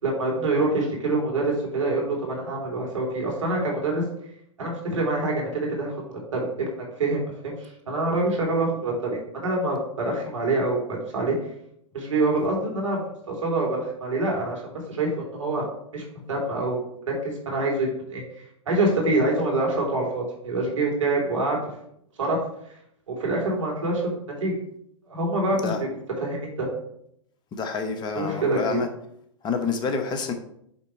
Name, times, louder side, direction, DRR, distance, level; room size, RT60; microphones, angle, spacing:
voice 1, 0.0-4.0 4.6-5.9 6.3-6.7 7.0-11.3 11.9-15.6 15.9-16.8 17.1-17.2 17.4-21.6 22.2-22.4 23.2-24.1 24.4-24.5 25.1-26.7 28.1-28.8, right 2 dB, 75° right, -2 dB, 2.9 m, -26 dB
voice 2, 27.5-28.9 29.4-30.3, left 5 dB, 25° left, 6 dB, 0.9 m, -28 dB
8.3 x 3.5 x 4.5 m, 0.73 s
figure-of-eight pair, 105°, 16 cm